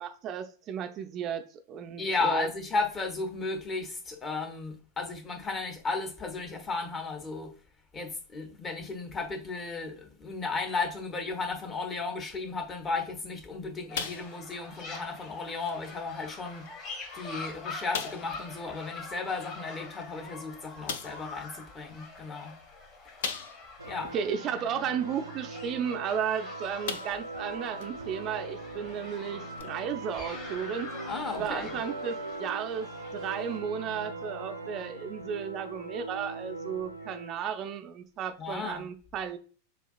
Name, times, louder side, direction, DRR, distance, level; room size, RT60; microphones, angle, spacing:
voice 1, 0.0-2.5 24.1-30.9 31.4-39.4, right 7 dB, 35° right, 0.4 m, -34 dB
voice 2, 2.0-7.5 7.9-16.7 17.1-22.6 23.9-24.1 31.1-31.8 38.4-38.9, left 4 dB, 20° left, 0.7 m, -34 dB
sound 1, 13.9-14.6 14.9-15.1 15.7-15.8 16.6-16.7 17.1-17.2 17.9-18.4 20.0-20.1 20.9-21.3 23.2-23.8 24.3-24.4 26.2-26.4 26.8-27.4 27.8-27.9 29.6-29.7, left 6 dB, 55° left, 0.4 m, -36 dB
sound 2, 13.9-33.6, left 3 dB, 40° left, 1.7 m, -45 dB
sound 3, 23.8-37.7, right 2 dB, 80° right, 0.6 m, -41 dB
6.6 x 2.3 x 2.4 m
figure-of-eight pair, 90°, 0 cm